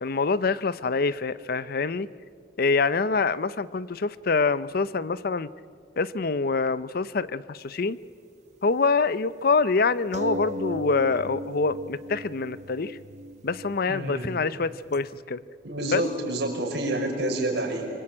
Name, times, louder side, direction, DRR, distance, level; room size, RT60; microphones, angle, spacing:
voice 1, 0.0-2.1 2.6-5.5 6.0-8.0 8.6-13.0 13.4-15.4 15.9-16.0, left 4 dB, 55° left, 16 dB, 0.6 m, -25 dB
sound 1, 10.1-15.2, equal, 40° right, 0.7 m, -37 dB
voice 2, 13.9-14.3 15.6-17.9, right 1 dB, 60° right, 1 dB, 5.5 m, -28 dB
25.5 x 24.5 x 8.8 m, 2.2 s
head